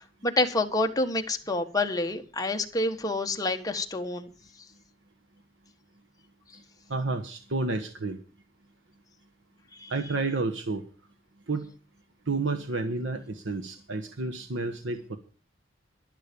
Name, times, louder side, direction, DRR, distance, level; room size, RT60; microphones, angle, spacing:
voice 1, 0.0-4.3 9.7-9.9, left 2 dB, 20° left, 1.4 m, -28 dB
voice 2, 6.9-8.2 9.9-10.8 11.5-11.7 12.3-15.2, right 3 dB, 80° right, 1.3 m, -30 dB
12.0 x 11.5 x 5.3 m
head